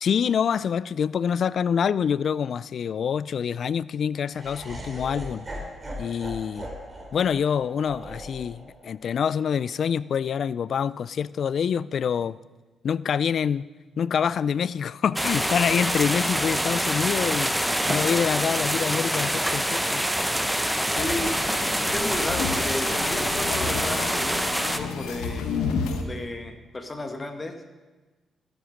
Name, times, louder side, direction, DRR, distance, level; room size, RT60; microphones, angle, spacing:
voice 1, 0.0-5.5 6.0-6.7 7.1-12.4 12.8-13.7 14.0-17.6 17.9-20.0, left 7 dB, 65° left, 0.3 m, -26 dB
Laughter, 4.3-10.5, equal, 25° right, 3.4 m, -40 dB
sound 1, 15.2-24.8, equal, 5° right, 0.8 m, -26 dB
sound 2, 21.0-26.0, left 5 dB, 90° left, 1.0 m, -31 dB
voice 2, 21.0-21.6 21.9-25.5 26.0-27.6, left 2 dB, 30° left, 1.5 m, -33 dB
12.5 x 7.9 x 5.1 m
supercardioid pair, 65°, 0 cm